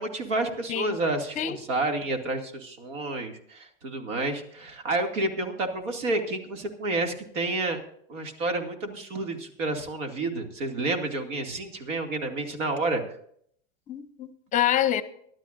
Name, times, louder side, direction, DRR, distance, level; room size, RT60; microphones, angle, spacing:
voice 1, 0.0-7.8 8.1-13.0, right 2 dB, 90° right, 2.5 m, -30 dB
voice 2, 13.9-15.0, left 11 dB, 20° left, 0.6 m, -26 dB
24.0 x 12.0 x 2.6 m
supercardioid pair, 150°, 37 cm